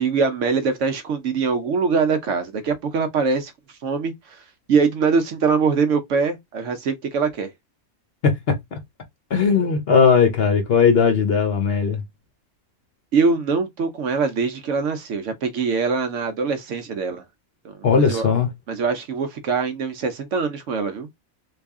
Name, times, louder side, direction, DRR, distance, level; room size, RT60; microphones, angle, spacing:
voice 1, 0.0-7.5 13.1-17.2 17.6-18.3 18.7-21.1, right 5 dB, 65° right, 0.9 m, -23 dB
voice 2, 8.2-8.8 9.3-12.0 17.8-18.5, left 5 dB, 50° left, 0.8 m, -18 dB
3.3 x 2.4 x 3.5 m
omnidirectional pair, 1.5 m